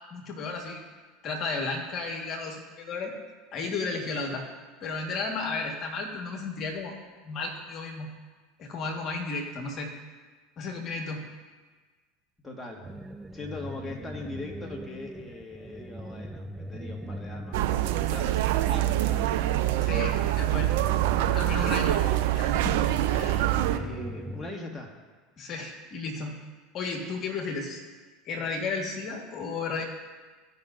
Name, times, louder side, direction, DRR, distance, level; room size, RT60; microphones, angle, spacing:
voice 1, 0.1-0.8 1.2-3.1 3.5-4.5 4.8-6.9 7.2-8.1 8.6-9.9 10.6-11.2 19.8-20.7 21.3-22.0 22.3-23.5 25.4-26.4 26.7-27.8 28.2-29.8, left 4 dB, 45° left, 1 dB, 1.5 m, -33 dB
voice 2, 12.4-12.9 13.3-19.4 23.6-24.9, left 2 dB, 10° left, -1 dB, 1.5 m, -41 dB
sound 1, 12.8-24.5, right 1 dB, 15° right, 0.5 m, -40 dB
sound 2, 17.5-23.8, right 14 dB, 65° right, 0.5 m, -25 dB
16.0 x 5.5 x 2.5 m, 1.4 s
hypercardioid pair, 80°, 0 cm